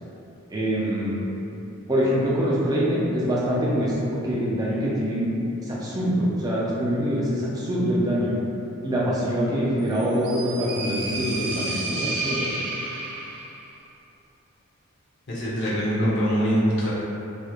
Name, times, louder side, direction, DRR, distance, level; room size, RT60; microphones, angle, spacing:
voice 1, 0.5-1.2 1.9-5.3 5.6-8.3 8.8-12.5, equal, 15° right, -6 dB, 0.3 m, -24 dB
sound 1, 9.9-13.6, right 2 dB, 80° right, 0.4 m, -31 dB
voice 2, 15.3-16.9, equal, 55° left, -9 dB, 0.6 m, -23 dB
2.3 x 2.0 x 2.9 m, 2.8 s
head